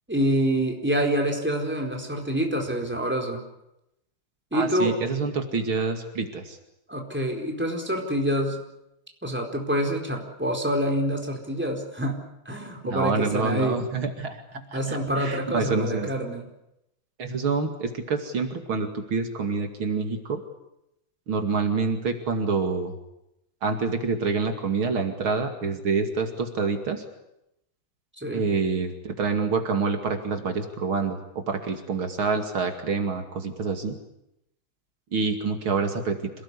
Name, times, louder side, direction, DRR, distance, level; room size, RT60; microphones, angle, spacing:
voice 1, 0.1-3.4 4.5-5.0 6.9-8.6 9.2-12.2 12.4-13.8 14.7-16.4 28.2-28.4, equal, 5° right, 1 dB, 4.3 m, -26 dB
voice 2, 4.5-6.6 12.8-16.1 17.2-20.4 21.3-22.9 23.6-27.0 28.3-34.0 35.1-36.3, right 4 dB, 70° right, 5 dB, 3.2 m, -27 dB
27.5 x 18.5 x 9.9 m, 0.85 s
omnidirectional pair, 2.4 m